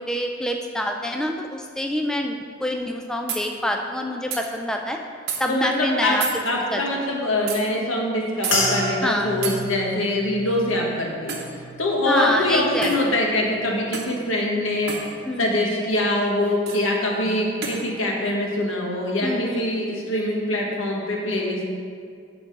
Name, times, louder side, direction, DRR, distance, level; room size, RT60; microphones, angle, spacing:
voice 1, 0.0-5.0 5.4-6.2 6.7-6.8 9.0-9.3 12.1-12.9 15.3-15.5 19.2-19.8, equal, 5° left, 2 dB, 0.3 m, -26 dB
sound 1, 2.8-2.9 3.3-3.5 4.3-4.4 5.3-5.4 6.2-6.4 7.5-7.6 8.4-8.6 9.4-9.6 11.3-11.5 12.8-13.0 13.9-14.2 14.9-15.1 16.7-16.8 17.6-17.8, right 6 dB, 55° right, 1.0 m, -29 dB
voice 2, 5.5-11.4 11.8-21.7, left 1 dB, 85° left, -1 dB, 1.4 m, -24 dB
sound 2, 8.5-13.0 13.4-14.0 14.6-14.8, equal, 70° left, 1.8 m, -31 dB
8.2 x 3.9 x 6.4 m, 2.2 s
head